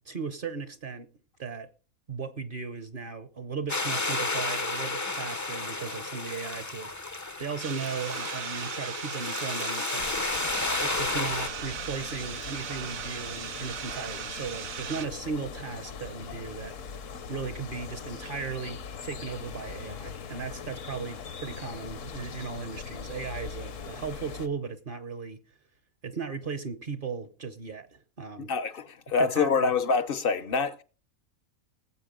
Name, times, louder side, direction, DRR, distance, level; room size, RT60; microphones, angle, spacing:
voice 1, 0.1-1.1 1.4-1.7 2.1-6.9 7.4-10.1 10.8-16.7 17.3-25.4 26.0-28.5 29.2-29.7, right 5 dB, 45° right, 0.9 m, -37 dB
sound 1, 3.7-11.5, left 3 dB, 20° left, 0.4 m, -32 dB
sound 2, 7.6-15.1, right 9 dB, 80° right, 1.1 m, -38 dB
sound 3, 10.0-24.5, left 6 dB, 70° left, 1.3 m, -41 dB
voice 2, 28.5-30.8, left 5 dB, 50° left, 0.7 m, -26 dB
19.5 x 7.8 x 3.7 m
omnidirectional pair, 1.4 m